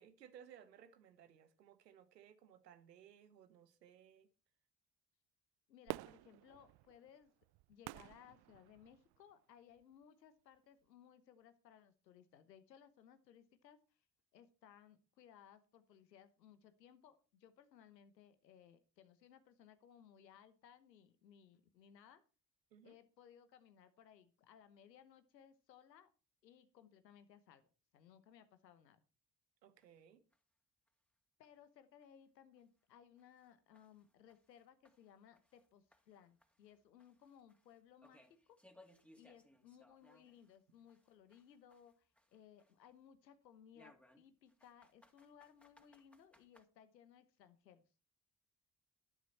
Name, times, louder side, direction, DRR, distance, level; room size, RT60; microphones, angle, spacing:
voice 1, 0.0-4.3 22.7-23.0 29.6-30.2, right 9 dB, 85° right, 1.2 m, -61 dB
voice 2, 5.7-7.3 7.7-14.0 14.3-22.2 22.8-26.1 26.4-27.7 27.9-29.0 31.4-38.6 39.1-47.8, left 9 dB, 90° left, 1.1 m, -63 dB
Fireworks, 5.9-9.2 9.8-9.9, right 19 dB, 55° right, 0.5 m, -50 dB
sound 1, 29.8-29.9 30.3-30.4 30.9-31.0 31.4-31.5 32.0-32.1 32.6-32.7 33.2-35.7 35.9-40.6 40.9-42.9 43.7-46.6, left 1 dB, 5° left, 2.6 m, -68 dB
11.5 x 11.5 x 4.3 m
figure-of-eight pair, 40°, 49 cm